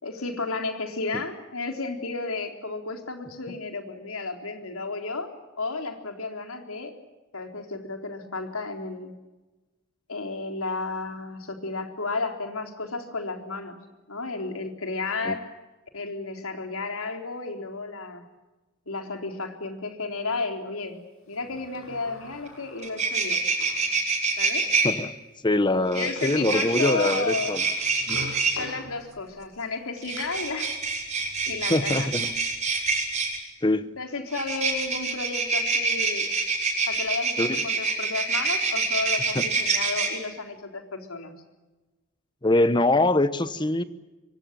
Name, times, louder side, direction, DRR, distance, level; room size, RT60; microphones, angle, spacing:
voice 1, 0.0-5.3 5.6-6.9 7.3-9.1 10.1-13.8 14.1-15.5 15.9-18.2 18.9-23.4 24.4-24.7 25.9-27.5 28.5-30.8 31.2-32.3 34.0-36.3 36.9-41.3, left 3 dB, 85° left, 4 dB, 3.9 m, -33 dB
Sliding door, 21.3-23.9 24.5-24.6 25.9-26.0 26.1-29.3 29.8-30.2, left 1 dB, 70° left, 7.4 m, -44 dB
sound 1, 22.5-22.6 22.8-24.9 25.9-28.6 30.0-33.4 34.3-40.1, right 4 dB, 35° right, 6.3 m, -26 dB
voice 2, 24.8-25.2 25.4-27.6 28.1-28.2 31.7-32.3 33.6-33.9 37.4-37.6 39.3-39.5 42.4-43.8, left 2 dB, 20° left, 13 dB, 1.0 m, -23 dB
26.5 x 24.0 x 7.6 m, 1.2 s
head